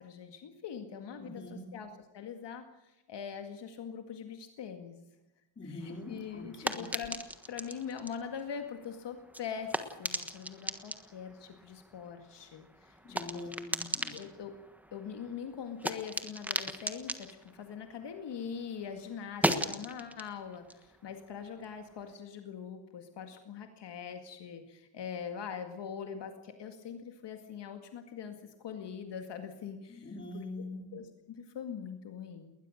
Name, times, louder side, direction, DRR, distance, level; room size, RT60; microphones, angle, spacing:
voice 1, 0.0-5.0 5.6-7.2 7.5-13.5 14.1-14.6 14.9-30.4 30.9-32.5, left 7 dB, 65° left, 6 dB, 2.2 m, -43 dB
voice 2, 1.2-1.7 5.6-6.9 13.0-14.2 29.9-31.0, left 2 dB, 25° left, 4 dB, 3.7 m, -44 dB
sound 1, 5.8-18.6 18.9-22.1, right 1 dB, 5° right, 1.3 m, -39 dB
20.5 x 20.0 x 6.5 m, 0.95 s
wide cardioid pair, 165°, 46 cm